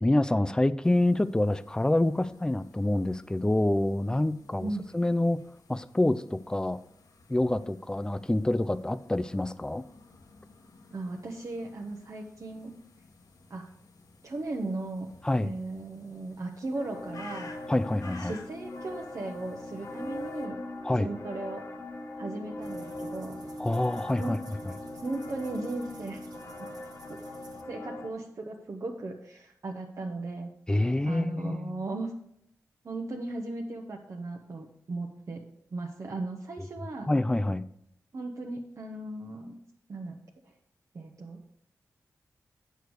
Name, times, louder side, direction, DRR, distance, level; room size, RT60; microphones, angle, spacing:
voice 1, 0.0-5.4 5.7-6.8 7.3-9.9 15.2-15.5 17.7-18.3 20.8-21.1 23.6-24.4 24.7-24.8 30.7-31.8 37.1-37.6, left 1 dB, 10° left, 14 dB, 0.4 m, -27 dB
sound 1, 0.8-20.5, left 3 dB, 75° left, 1.3 m, -54 dB
voice 2, 10.9-12.7 13.5-13.7 14.2-15.1 15.4-17.5 18.2-20.6 21.0-21.6 22.2-23.4 24.2-24.4 25.0-26.3 26.6-26.7 27.1-27.2 27.7-30.5 31.0-32.1 32.8-35.4 35.7-37.1 38.1-39.5 39.9-40.1 40.9-41.4, right 2 dB, 55° right, 0 dB, 0.9 m, -37 dB
sound 2, 16.7-28.1, left 2 dB, 40° left, 1.1 m, -41 dB
sound 3, 22.6-27.6, right 3 dB, 90° right, 1.2 m, -52 dB
8.0 x 6.8 x 4.7 m, 0.72 s
wide cardioid pair, 80°, 6 cm